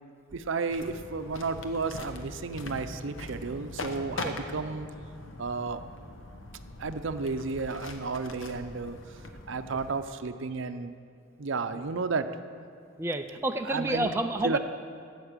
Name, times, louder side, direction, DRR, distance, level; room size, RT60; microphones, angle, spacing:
voice 1, 0.3-4.9 5.4-5.8 6.8-9.0 9.5-10.9 11.4-12.3 13.7-14.1 14.4-14.6, right 4 dB, 65° right, 10 dB, 0.6 m, -32 dB
sound 1, 0.7-10.0, left 2 dB, 65° left, 1.0 m, -42 dB
voice 2, 13.0-14.6, right 1 dB, 10° right, 4 dB, 0.3 m, -29 dB
13.5 x 8.1 x 6.7 m, 2.3 s
head